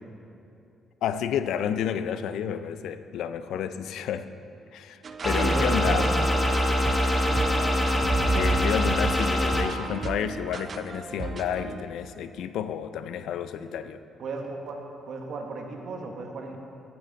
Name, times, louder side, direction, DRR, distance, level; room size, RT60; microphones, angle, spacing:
voice 1, 1.0-4.3 4.7-6.0 8.3-14.0, left 9 dB, 80° left, 11 dB, 0.4 m, -30 dB
sound 1, 5.0-11.8, right 4 dB, 45° right, 0.5 m, -34 dB
sound 2, 5.2-9.6, left 1 dB, 5° left, 1.3 m, -24 dB
voice 2, 5.3-6.3 7.2-7.7 14.2-16.6, right 3 dB, 65° right, 2 dB, 1.3 m, -34 dB
15.0 x 7.8 x 4.0 m, 2.7 s
cardioid pair, 90°, 0 cm